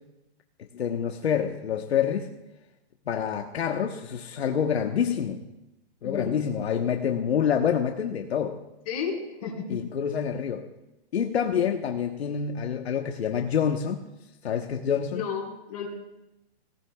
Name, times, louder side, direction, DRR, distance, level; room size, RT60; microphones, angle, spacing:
voice 1, 0.7-2.3 3.1-5.4 6.0-8.6 9.7-10.7 11.1-14.0 14.4-15.2, left 8 dB, 70° left, 4 dB, 1.2 m, -27 dB
voice 2, 6.0-6.3 8.9-9.8 15.1-15.9, left 6 dB, 35° left, -2 dB, 4.4 m, -32 dB
18.0 x 18.0 x 2.3 m, 0.95 s
hypercardioid pair, 165°, 33 cm